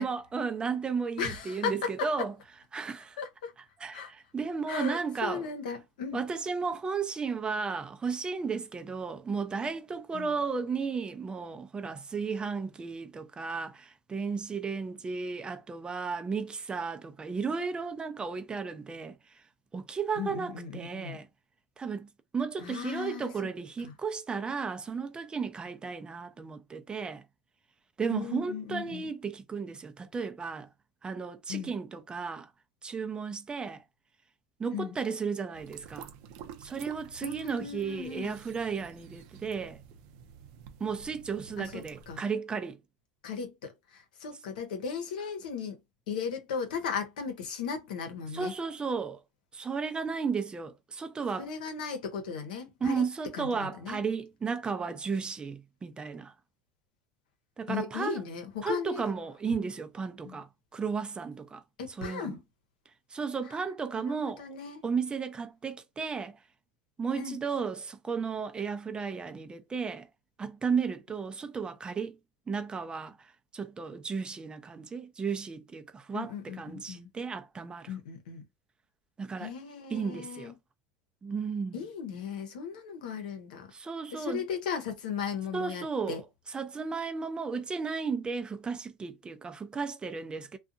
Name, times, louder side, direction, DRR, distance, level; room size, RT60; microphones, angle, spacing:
voice 1, 0.0-2.3 2.7-3.2 3.8-5.5 6.1-19.1 19.7-21.3 21.8-22.1 22.3-27.2 28.0-30.7 31.0-32.5 32.8-33.8 34.6-36.1 36.6-39.8 40.8-42.8 48.3-49.2 49.5-51.5 52.8-56.3 57.6-58.2 58.6-61.6 62.0-62.4 63.1-64.4 64.8-66.4 67.0-70.1 70.4-72.2 72.5-73.2 73.5-76.3 76.6-77.9 79.2-79.5 79.9-80.5 81.2-81.8 83.7-84.4 85.5-86.2 86.5-90.6, right 5 dB, 20° right, 0.5 m, -34 dB
voice 2, 1.2-2.1 3.2-3.5 3.9-4.1 4.7-6.2 10.1-10.4 20.2-21.2 22.6-23.5 23.8-23.9 28.1-29.1 31.5-31.7 34.7-34.9 37.2-38.4 41.6-42.2 43.2-45.8 46.1-48.5 51.4-53.0 53.3-54.0 57.7-59.0 60.2-60.4 61.8-62.4 63.4-63.6 63.9-64.8 67.2-67.4 76.1-77.1 77.9-78.4 79.4-80.5 81.7-83.7 84.1-86.2, left 6 dB, 85° left, 0.9 m, -37 dB
sound 1, 35.5-42.2, right 9 dB, 65° right, 0.5 m, -49 dB
2.6 x 2.3 x 2.5 m
supercardioid pair, 100°, 4 cm